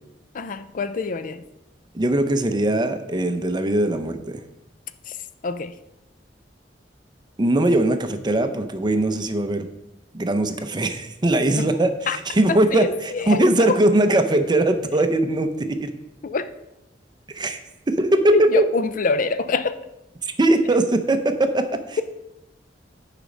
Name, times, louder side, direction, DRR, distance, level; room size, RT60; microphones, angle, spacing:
voice 1, 0.3-1.4 5.1-5.2 5.4-5.7 11.6-11.7 12.1-12.2 12.5-13.8 14.9-15.1 16.2-16.4 18.3-19.8, left 4 dB, 50° left, 0.4 m, -25 dB
voice 2, 1.9-4.4 7.4-9.7 10.1-15.9 17.3-17.6 17.9-18.7 20.2-22.0, right 1 dB, 25° right, 0.6 m, -20 dB
9.9 x 5.0 x 5.2 m
head